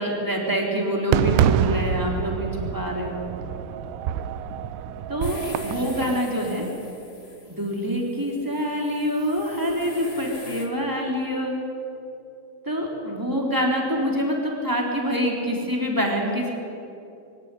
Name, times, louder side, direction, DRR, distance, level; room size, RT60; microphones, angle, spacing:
voice 1, 0.0-3.2 5.1-6.6 7.5-11.6 12.6-16.5, equal, 5° right, -1 dB, 2.7 m, -26 dB
Fireworks, 1.1-6.2, right 9 dB, 85° right, 3.3 m, -26 dB
sound 1, 5.2-10.7, left 2 dB, 40° left, 0.8 m, -42 dB
23.0 x 17.5 x 10.0 m, 2.7 s
omnidirectional pair, 5.8 m